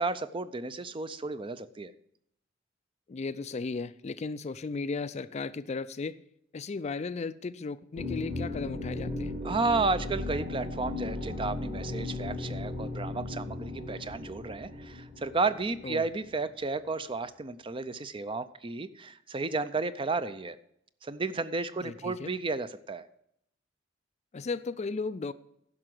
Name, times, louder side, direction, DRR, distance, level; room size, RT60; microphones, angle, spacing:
voice 1, 0.0-1.9 9.4-20.6 21.0-23.0, right 3 dB, 25° right, 0.5 m, -32 dB
voice 2, 3.1-6.2 6.5-9.3 15.8-16.1 21.8-22.3 24.3-25.3, left 4 dB, 35° left, 0.4 m, -35 dB
sound 1, 8.0-16.5, left 2 dB, 45° right, 2.3 m, -36 dB
11.0 x 6.0 x 7.7 m
head